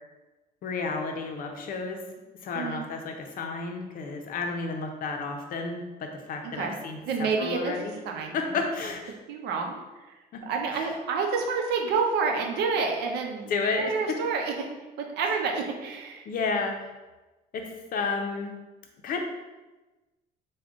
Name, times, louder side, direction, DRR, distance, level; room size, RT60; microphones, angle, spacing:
voice 1, 0.6-2.0 2.4-7.9 8.3-9.1 10.3-10.5 10.7-10.9 13.5-14.2 16.3-16.9 17.5-18.6 19.0-19.2, left 4 dB, 55° left, 3 dB, 0.6 m, -31 dB
voice 2, 2.5-2.8 6.4-6.8 7.0-8.6 9.3-9.8 10.4-14.7 15.0-16.2, right 5 dB, 80° right, 2 dB, 0.6 m, -29 dB
3.6 x 2.2 x 3.5 m, 1.1 s
cardioid pair, 110°, 17 cm